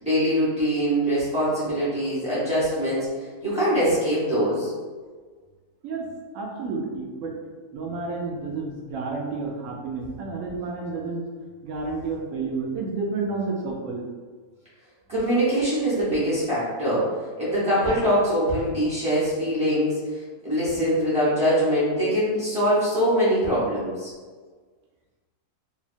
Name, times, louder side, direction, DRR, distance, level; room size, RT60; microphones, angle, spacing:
voice 1, 0.0-3.1 3.4-4.7 15.1-17.1 17.4-24.1, equal, 5° right, -11 dB, 0.6 m, -23 dB
voice 2, 6.3-7.4 7.7-11.2 11.6-14.0, right 3 dB, 70° right, -1 dB, 0.8 m, -30 dB
2.8 x 2.1 x 2.5 m, 1.5 s
omnidirectional pair, 1.7 m